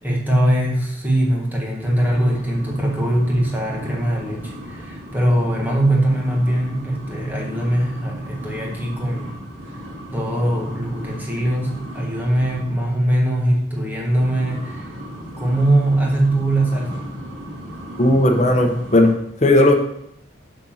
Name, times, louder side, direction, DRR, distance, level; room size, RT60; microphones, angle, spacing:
voice 1, 0.0-9.3 9.7-9.8 10.1-14.9 15.4-17.0, right 1 dB, 10° right, -2 dB, 1.6 m, -21 dB
sound 1, 1.8-12.9 14.0-19.1, equal, 85° right, 2.6 m, -36 dB
voice 2, 18.0-19.7, left 1 dB, 35° left, 3 dB, 1.0 m, -16 dB
7.8 x 4.2 x 6.4 m, 0.74 s
head